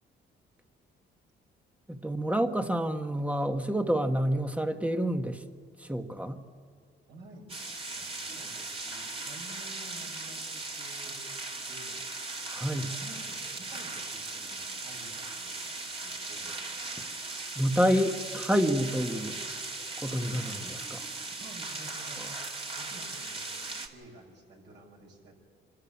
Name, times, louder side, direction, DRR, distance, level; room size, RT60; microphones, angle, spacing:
voice 1, 1.9-5.4 5.8-6.4 12.6-12.9 17.5-19.4 20.0-21.1, equal, 5° right, 6 dB, 1.4 m, -28 dB
voice 2, 7.1-16.8 20.0-20.5 21.2-25.4, right 2 dB, 60° right, 0 dB, 6.3 m, -52 dB
sound 1, 7.5-23.9, right 3 dB, 30° right, 2.4 m, -38 dB
26.0 x 13.0 x 8.7 m, 2.2 s
cardioid pair, 90°, 20 cm